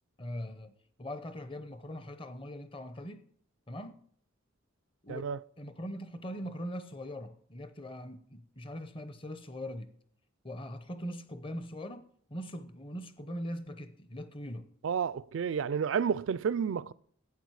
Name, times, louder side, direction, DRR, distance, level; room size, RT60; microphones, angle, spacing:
voice 1, 0.2-3.3 3.7-4.0 5.0-9.9 10.4-14.7, equal, 25° left, 0.8 m, -41 dB
voice 2, 14.8-16.9, right 7 dB, 65° right, 0.4 m, -30 dB
12.0 x 8.6 x 4.8 m
head